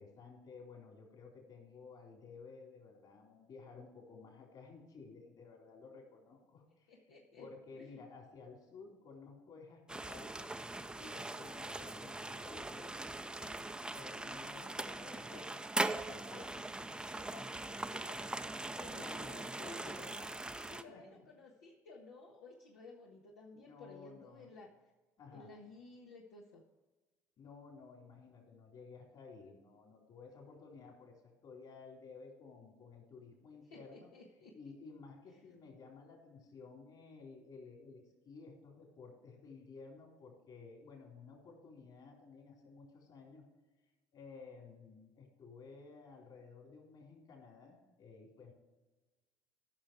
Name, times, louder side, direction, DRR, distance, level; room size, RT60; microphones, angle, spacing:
voice 1, 0.0-6.9 7.4-10.5 10.9-16.9 18.6-20.3 20.9-21.0 23.5-24.5 25.2-25.5 27.4-34.1 34.5-43.5 44.1-48.5, left 4 dB, 50° left, 0 dB, 4.1 m, -54 dB
voice 2, 6.9-7.5 7.7-8.0 15.1-15.5 16.3-16.4 17.1-18.6 18.9-19.9 20.6-24.7 25.3-26.6 33.7-34.7, left 3 dB, 75° left, -2 dB, 1.4 m, -55 dB
sound 1, 9.9-20.8, right 2 dB, 10° right, 0.6 m, -41 dB
15.0 x 6.3 x 4.8 m, 1.2 s
hypercardioid pair, 60°, 9 cm